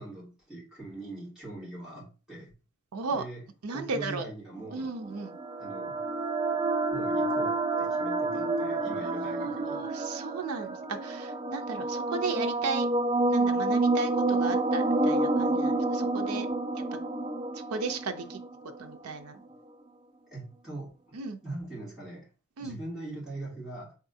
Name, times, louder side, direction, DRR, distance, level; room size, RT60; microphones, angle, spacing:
voice 1, 0.0-2.5 3.0-3.4 3.7-4.9 5.6-6.0 6.9-9.8 20.3-21.2 21.4-22.3 22.6-23.9, right 2 dB, 5° right, -8 dB, 2.3 m, -42 dB
voice 2, 2.9-3.3 3.6-4.3 4.7-5.4 9.0-12.9 13.3-16.5 16.8-16.9 17.5-18.4 18.8-19.4 21.1-21.4 22.6-22.8, right 4 dB, 90° right, 6 dB, 0.5 m, -35 dB
sound 1, 4.8-19.0, right 2 dB, 25° right, 0.3 m, -29 dB
4.0 x 3.6 x 2.6 m, 0.34 s
head